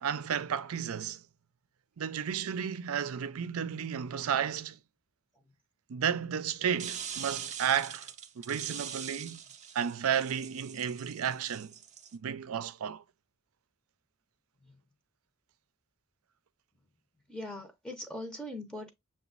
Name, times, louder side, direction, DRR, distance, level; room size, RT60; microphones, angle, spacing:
voice 1, 0.0-1.2 2.0-4.8 5.9-8.1 8.4-9.4 9.7-11.7 12.1-13.0, right 8 dB, 85° right, 0.5 m, -32 dB
sound 1, 6.8-12.1, right 8 dB, 35° right, 0.5 m, -43 dB
voice 2, 17.3-18.9, left 1 dB, 5° left, 0.7 m, -40 dB
6.9 x 2.4 x 2.4 m
head